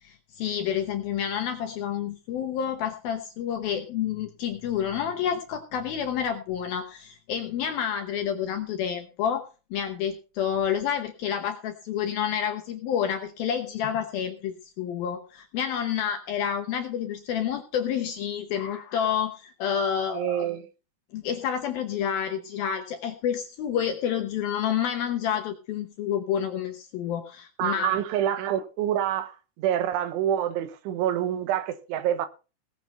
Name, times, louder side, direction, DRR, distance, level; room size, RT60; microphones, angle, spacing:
voice 1, 0.0-20.5 21.1-28.0, left 8 dB, 70° left, 2.3 m, -29 dB
voice 2, 20.1-20.6 27.6-32.3, right 11 dB, 80° right, 3.6 m, -27 dB
18.5 x 7.5 x 5.4 m
omnidirectional pair, 5.5 m